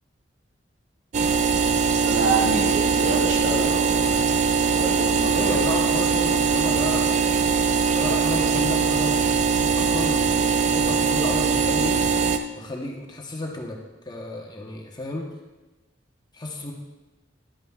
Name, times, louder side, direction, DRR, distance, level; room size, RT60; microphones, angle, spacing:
sound 1, 1.1-12.4, right 5 dB, 40° right, 0.4 m, -21 dB
voice 1, 1.9-4.4 4.7-5.6, right 2 dB, 70° right, -3 dB, 2.0 m, -27 dB
voice 2, 5.3-7.6 7.9-13.8 14.0-15.3 16.3-16.7, left 1 dB, 25° left, 0 dB, 1.0 m, -32 dB
11.0 x 8.9 x 2.4 m, 1.1 s
head